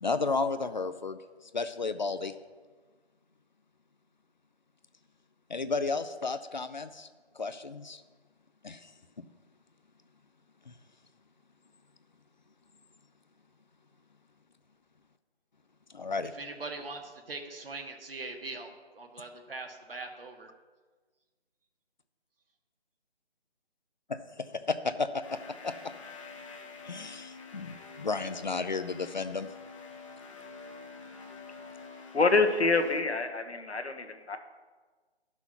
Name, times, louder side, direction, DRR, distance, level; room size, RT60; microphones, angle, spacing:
voice 1, 0.0-1.2 1.5-2.3 5.5-7.1 7.3-8.0 8.6-8.9 9.2-9.3 10.7-10.8 15.9-16.3 24.1-24.2 24.7-25.4 25.6-25.7 26.8-29.5, left 4 dB, 45° left, 11 dB, 0.5 m, -32 dB
voice 2, 16.3-20.5, right 3 dB, 60° right, 3 dB, 1.7 m, -41 dB
sound 1, 25.2-33.0, left 4 dB, 30° left, 1.1 m, -47 dB
voice 3, 32.1-34.4, left 3 dB, 90° left, 6 dB, 1.4 m, -26 dB
11.5 x 6.2 x 5.7 m, 1.4 s
figure-of-eight pair, 160°, 32 cm